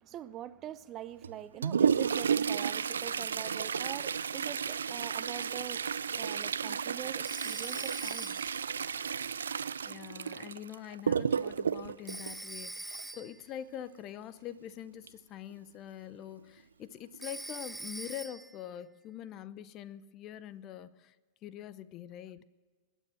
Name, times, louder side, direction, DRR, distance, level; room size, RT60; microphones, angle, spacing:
voice 1, 0.0-5.8 6.1-8.4, right 11 dB, 40° right, 0.7 m, -44 dB
Toilet flush, 1.2-13.2 15.1-15.2 15.5-15.6 16.4-16.5 17.1-17.4 17.8-18.0, right 7 dB, 85° right, 0.4 m, -32 dB
Telephone, 7.2-8.7 12.1-13.5 17.2-18.6, right 2 dB, 10° right, 0.4 m, -43 dB
voice 2, 9.8-21.2 21.4-22.4, left 11 dB, 40° left, 0.7 m, -44 dB
21.0 x 9.2 x 6.2 m
hypercardioid pair, 100°, 0 cm